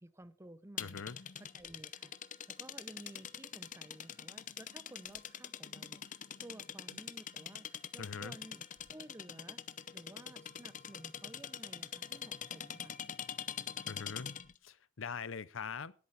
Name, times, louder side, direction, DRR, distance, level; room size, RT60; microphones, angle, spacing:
voice 1, 0.0-1.0 1.4-9.6 9.9-13.0, right 1 dB, 15° right, 0.7 m, -54 dB
voice 2, 0.8-1.2 8.0-8.4 13.8-14.4 14.6-15.9, left 5 dB, 85° left, 0.7 m, -42 dB
sound 1, 0.8-14.6, left 9 dB, 40° left, 0.7 m, -44 dB
18.0 x 8.6 x 4.2 m
head